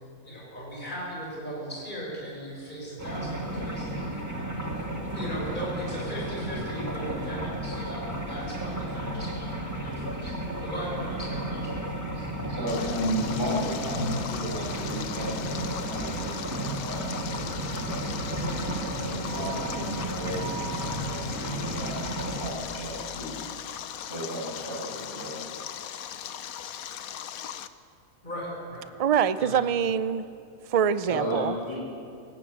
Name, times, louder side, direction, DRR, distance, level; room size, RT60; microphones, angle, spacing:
voice 1, 0.2-11.7 28.2-28.9 29.4-29.6, equal, 30° left, -4 dB, 7.1 m, -38 dB
sound 1, 3.0-22.5, right 1 dB, 10° right, 2.2 m, -33 dB
sound 2, 6.7-23.4, right 1 dB, 60° left, 6.2 m, -46 dB
voice 2, 12.1-18.5 18.8-23.3 24.1-25.4 31.1-31.9, equal, 40° right, -5 dB, 7.7 m, -34 dB
Stream, 12.7-27.7, left 9 dB, 75° left, 1.2 m, -39 dB
voice 3, 29.0-30.3 30.7-31.5, right 8 dB, 65° right, 14 dB, 0.3 m, -24 dB
20.0 x 18.5 x 8.5 m, 2.5 s
omnidirectional pair, 1.5 m